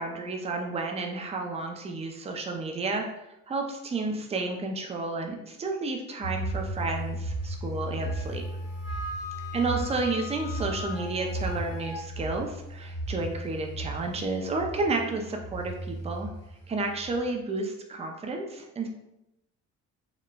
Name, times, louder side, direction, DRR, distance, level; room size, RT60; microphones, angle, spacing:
voice 1, 0.0-3.1 3.5-8.4 9.5-16.3 16.7-18.9, right 3 dB, 20° right, 3 dB, 0.4 m, -31 dB
sound 1, 6.2-17.2, right 1 dB, 90° left, 1.2 m, -36 dB
Wind instrument woodwind instrument, 7.9-12.0, left 3 dB, 55° left, 0.9 m, -41 dB
4.0 x 2.1 x 2.2 m, 0.89 s
cardioid pair, 90°, 30 cm